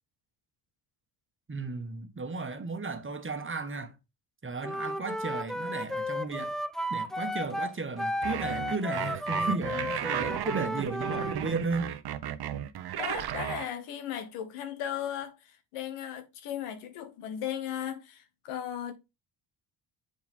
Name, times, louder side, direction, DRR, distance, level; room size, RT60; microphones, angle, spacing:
voice 1, 1.5-4.0 4.4-6.6 6.9-11.9, right 4 dB, 25° right, 1.3 m, -34 dB
Wind instrument woodwind instrument, 4.6-11.4, left 1 dB, ahead, 0.5 m, -33 dB
sound 1, 8.2-13.7, right 10 dB, 50° right, 0.8 m, -34 dB
voice 2, 13.0-18.9, left 10 dB, 85° left, 1.3 m, -36 dB
6.8 x 4.8 x 3.6 m
supercardioid pair, 65°, 49 cm